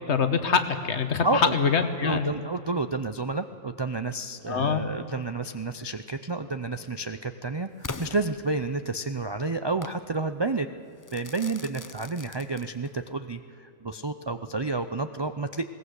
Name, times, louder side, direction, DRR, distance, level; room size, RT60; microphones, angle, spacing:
voice 1, 0.1-2.3 4.5-4.8, left 6 dB, 60° left, 9 dB, 1.5 m, -24 dB
voice 2, 1.2-1.5 2.0-10.7 11.1-15.6, right 3 dB, 40° right, 9 dB, 0.3 m, -30 dB
Crackle / Fireworks, 7.8-9.0 9.8-10.1 11.0-13.0, left 3 dB, 25° left, 0.4 m, -41 dB
21.0 x 18.0 x 8.1 m, 2.6 s
omnidirectional pair, 1.3 m